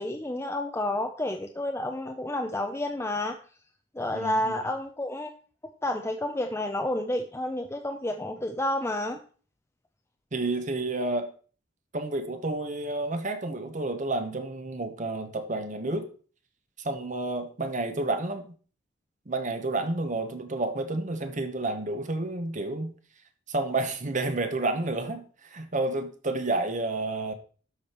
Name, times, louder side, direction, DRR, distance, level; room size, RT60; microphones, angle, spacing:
voice 1, 0.0-3.4 3.9-5.3 5.8-9.2, left 1 dB, 15° left, 0.6 m, -30 dB
voice 2, 4.1-4.6 10.3-11.3 11.9-16.1 16.8-18.5 19.3-22.9 23.5-27.3, right 2 dB, 40° right, 1.0 m, -30 dB
12.5 x 5.1 x 4.4 m
head